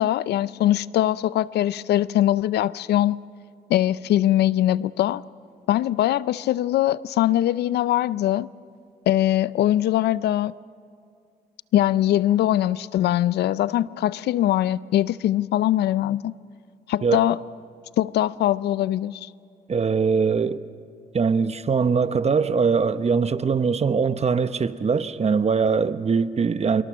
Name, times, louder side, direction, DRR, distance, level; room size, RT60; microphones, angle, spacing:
voice 1, 0.0-3.2 3.7-5.2 5.7-8.5 9.1-10.5 11.7-16.3 16.9-17.4 18.0-19.3, left 13 dB, 80° left, 0.5 m, -22 dB
voice 2, 19.7-20.6 21.1-26.8, right 5 dB, 40° right, 1.0 m, -22 dB
26.0 x 22.5 x 6.3 m
cardioid pair, 70°, 17 cm